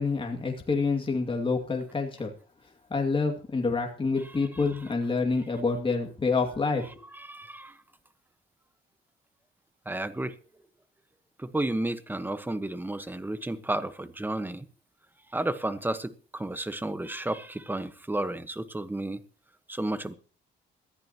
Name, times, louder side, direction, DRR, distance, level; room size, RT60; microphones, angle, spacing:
voice 1, 0.0-2.3 2.9-6.8, left 4 dB, 25° left, 2.4 m, -27 dB
voice 2, 7.1-7.8 9.8-10.4 11.4-14.7 15.3-19.2 19.7-20.1, right 1 dB, 10° right, 1.2 m, -32 dB
21.5 x 14.5 x 3.0 m
cardioid pair, 90°, 20 cm